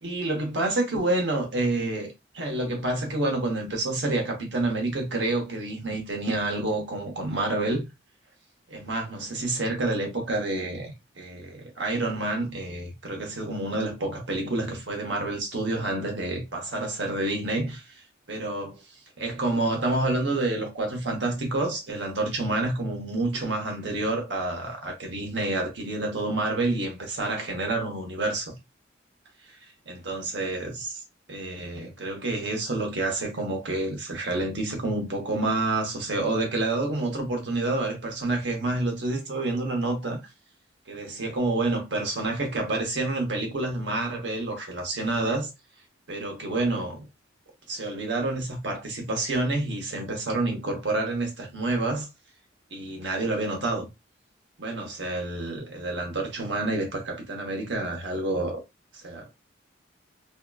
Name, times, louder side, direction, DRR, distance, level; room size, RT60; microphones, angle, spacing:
voice 1, 0.0-7.9 8.7-17.8 18.3-18.8 19.2-28.6 29.9-31.0 31.3-40.2 40.9-45.5 46.1-47.1 47.7-52.1 52.7-53.9 54.6-58.6 58.9-59.3, right 2 dB, 65° right, 0.9 m, -28 dB
2.8 x 2.3 x 2.2 m
head